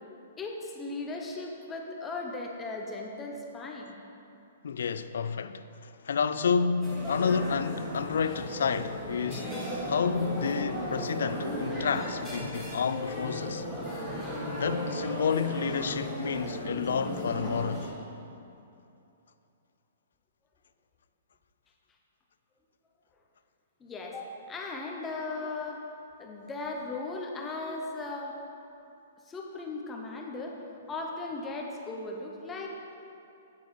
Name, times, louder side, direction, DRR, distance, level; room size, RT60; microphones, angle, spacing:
voice 1, 0.4-4.0 23.8-25.8 26.2-28.4 29.3-30.6 30.9-32.7, left 3 dB, 10° left, 0.6 m, -37 dB
voice 2, 4.6-9.6 9.9-13.7 14.5-17.9, left 6 dB, 75° left, 0.3 m, -30 dB
sound 1, 6.8-17.9, equal, 10° right, 2.0 m, -35 dB
9.4 x 8.5 x 3.1 m
hypercardioid pair, 170°, 0 cm